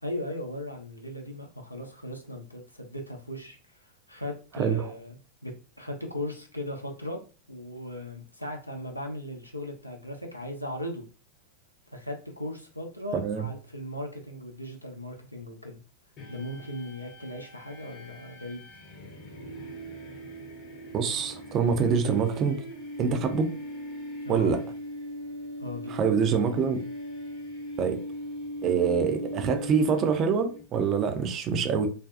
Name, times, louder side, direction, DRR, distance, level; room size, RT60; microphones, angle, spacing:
voice 1, 0.0-5.2 5.4-5.5 5.8-7.2 7.5-11.0 11.9-15.8 16.3-18.7 24.2-24.6 25.6-26.1, left 1 dB, 90° left, 0.5 m, -37 dB
voice 2, 13.1-13.5 20.9-22.6 23.0-23.5 24.3-24.6 25.9-26.8 27.8-28.0 28.6-31.9, right 6 dB, 30° right, 0.4 m, -25 dB
sound 1, 16.2-30.6, equal, 35° left, 0.8 m, -39 dB
2.5 x 2.2 x 2.4 m
figure-of-eight pair, 90°, 0 cm